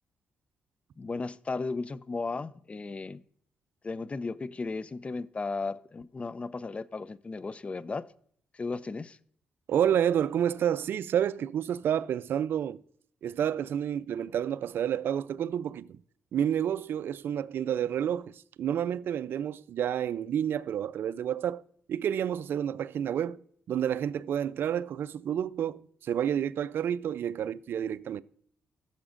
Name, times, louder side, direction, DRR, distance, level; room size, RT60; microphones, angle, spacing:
voice 1, 1.0-3.2 3.8-8.0 8.5-9.2, left 3 dB, 30° left, 0.5 m, -35 dB
voice 2, 9.7-12.8 13.2-16.0 16.3-21.6 21.9-23.4 23.7-28.2, right 9 dB, 70° right, 0.4 m, -29 dB
15.5 x 7.0 x 2.5 m
cardioid pair, 70°, 4 cm